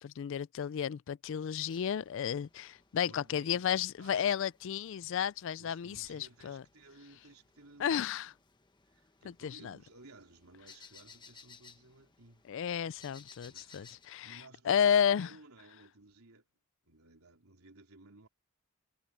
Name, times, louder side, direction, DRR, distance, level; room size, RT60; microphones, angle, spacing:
voice 1, 0.0-6.6 7.8-8.3 9.4-9.8 12.5-15.3, left 8 dB, 55° left, 0.3 m, -32 dB
sound 1, 1.6-14.1, left 5 dB, 20° left, 1.1 m, -60 dB
voice 2, 3.0-4.5 5.6-8.0 8.9-12.7 13.4-16.5 16.9-18.3, right 2 dB, 80° right, 3.4 m, -57 dB
head